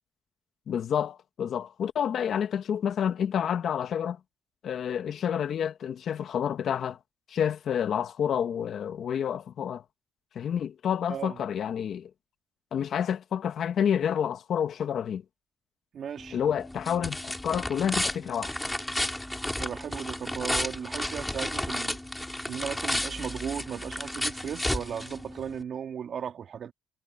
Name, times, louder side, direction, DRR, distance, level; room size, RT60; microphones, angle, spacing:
voice 1, 0.7-4.2 4.6-7.0 7.3-9.8 10.4-12.1 12.7-15.2 16.3-18.5, left 8 dB, 65° left, 1.8 m, -29 dB
voice 2, 15.9-16.4 19.6-22.0 22.5-26.7, right 8 dB, 60° right, 3.6 m, -36 dB
sound 1, 16.2-25.6, left 1 dB, 10° left, 5.8 m, -33 dB
cardioid pair, 90°, 0 cm